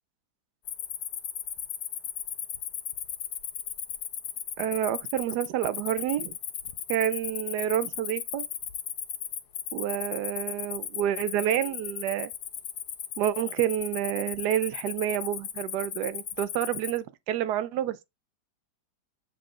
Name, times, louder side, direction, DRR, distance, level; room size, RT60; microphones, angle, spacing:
Cricket, 0.6-17.0, left 10 dB, 70° left, 1.3 m, -36 dB
voice 1, 4.6-6.3 6.9-8.5 9.7-12.3 13.2-18.0, right 11 dB, 75° right, 1.1 m, -29 dB
6.9 x 3.7 x 3.7 m
omnidirectional pair, 1.8 m